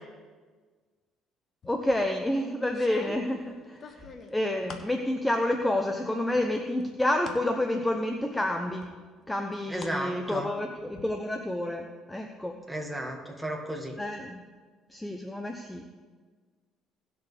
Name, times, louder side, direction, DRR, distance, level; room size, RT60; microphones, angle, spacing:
sound 1, 1.6-2.1 2.7-5.0 5.4-6.0 6.3-7.4 7.9-8.0 8.8-10.0 10.3-11.0, left 4 dB, 45° left, 1.2 m, -46 dB
voice 1, 1.7-3.9 4.3-8.9 9.3-12.6 14.0-14.4 14.9-15.8, left 1 dB, 10° left, 4 dB, 0.8 m, -29 dB
voice 2, 9.7-10.5 12.7-14.0, right 1 dB, 5° right, 1 dB, 2.0 m, -34 dB
17.5 x 6.8 x 3.5 m, 1.5 s
supercardioid pair, 90°, 0 cm